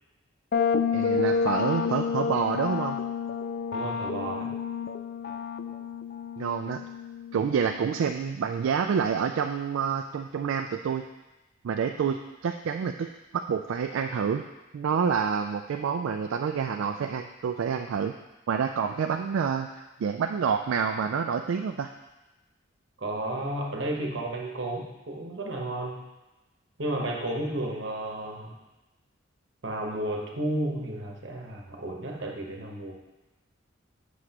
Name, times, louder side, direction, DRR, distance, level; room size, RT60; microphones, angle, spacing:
sound 1, 0.5-8.1, left 5 dB, 50° left, 0.3 m, -30 dB
voice 1, 0.9-3.0 6.4-6.8 7.3-11.0 11.6-13.1 13.3-14.4 14.7-18.1 18.5-21.9, right 6 dB, 80° right, 6 dB, 0.3 m, -28 dB
voice 2, 3.7-4.5 23.0-26.1 26.8-28.5 29.6-32.9, right 1 dB, 60° right, 0 dB, 1.0 m, -32 dB
7.8 x 6.1 x 2.9 m, 1.0 s
head